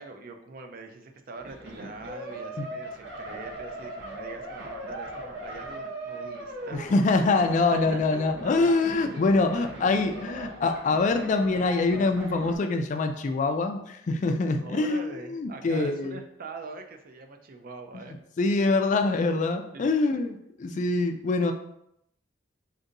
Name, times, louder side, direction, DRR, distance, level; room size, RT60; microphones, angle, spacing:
voice 1, 0.0-6.8 7.7-8.0 9.6-9.7 14.6-18.2 19.7-19.9, right 3 dB, 50° right, 5 dB, 0.4 m, -43 dB
sound 1, 1.4-12.6, right 1 dB, 75° right, 0.8 m, -39 dB
voice 2, 6.7-16.2 17.9-18.0 18.4-21.5, left 3 dB, 40° left, 6 dB, 0.3 m, -25 dB
5.0 x 2.6 x 2.6 m, 0.77 s
head